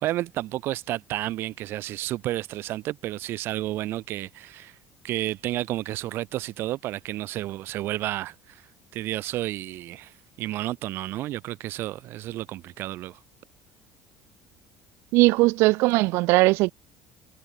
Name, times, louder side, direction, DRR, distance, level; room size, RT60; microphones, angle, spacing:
voice 1, 0.0-4.8 5.0-8.6 8.9-13.2, right 15 dB, 60° right, 1.9 m, -31 dB
voice 2, 15.1-16.7, right 22 dB, 75° right, 2.0 m, -19 dB
cardioid pair, 130°, 4 cm